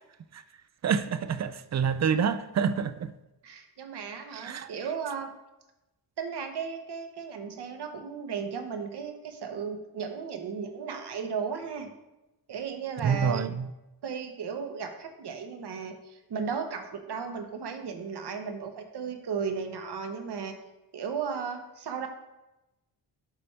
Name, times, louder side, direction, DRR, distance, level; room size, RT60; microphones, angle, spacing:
voice 1, 0.8-3.1 4.3-4.7 13.0-13.7, right 7 dB, 40° right, 0.4 m, -27 dB
voice 2, 3.4-5.3 6.2-11.9 12.5-13.4 14.0-20.5 20.9-22.1, right 6 dB, 65° right, 1.1 m, -35 dB
11.0 x 4.2 x 3.3 m
wide cardioid pair, 125°, 44 cm